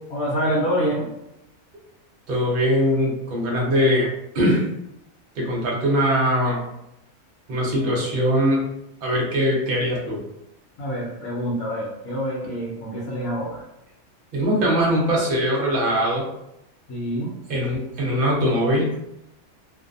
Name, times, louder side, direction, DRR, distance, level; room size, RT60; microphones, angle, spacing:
voice 1, 0.1-1.1 10.8-13.6 16.9-17.3, equal, 75° left, -4 dB, 1.0 m, -26 dB
voice 2, 2.3-4.1 4.3-4.6 5.4-6.6 7.5-8.6 9.0-10.2 14.3-16.3 17.5-19.0, equal, 50° right, -2 dB, 0.7 m, -21 dB
2.5 x 2.1 x 2.5 m, 0.84 s
omnidirectional pair, 1.5 m